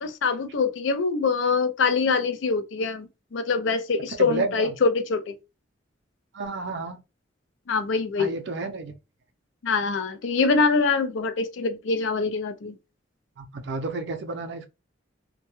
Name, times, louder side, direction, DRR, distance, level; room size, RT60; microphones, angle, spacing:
voice 1, 0.0-5.3 7.7-8.3 9.6-12.8, left 4 dB, 70° left, 0.4 m, -24 dB
voice 2, 4.2-4.7 6.3-7.0 8.2-9.0 13.4-14.7, right 3 dB, 65° right, 0.5 m, -31 dB
2.2 x 2.1 x 2.9 m
head